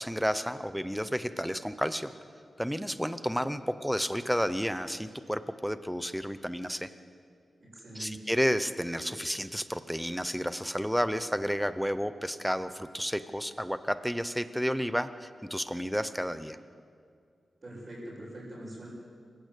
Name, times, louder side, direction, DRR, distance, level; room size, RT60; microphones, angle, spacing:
voice 1, 0.0-2.1 2.6-6.9 7.9-16.6, equal, ahead, 12 dB, 0.7 m, -31 dB
voice 2, 7.6-8.3 17.6-18.9, right 1 dB, 30° right, -10 dB, 6.5 m, -43 dB
26.5 x 15.5 x 8.3 m, 2.2 s
wide cardioid pair, 175°, 0 cm